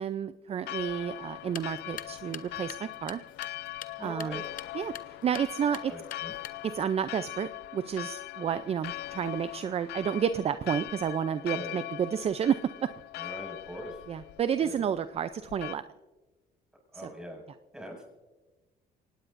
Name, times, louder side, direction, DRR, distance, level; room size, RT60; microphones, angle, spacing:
voice 1, 0.0-3.2 4.0-4.4 4.7-5.9 6.6-12.9 13.2-13.3 14.1-15.8 17.0-17.1, right 8 dB, 35° right, 12 dB, 0.5 m, -31 dB
Church bell, 0.6-15.8, left 16 dB, 75° left, 0.4 m, -41 dB
sound 1, 1.4-6.9, left 10 dB, 55° left, 0.9 m, -47 dB
voice 2, 4.0-4.4 5.9-6.4 8.3-8.7 11.5-11.7 13.2-14.0 14.6-14.8 16.9-17.4 17.7-18.1, equal, 5° right, 0 dB, 6.6 m, -42 dB
24.5 x 18.5 x 2.6 m, 1.2 s
cardioid pair, 110°, 17 cm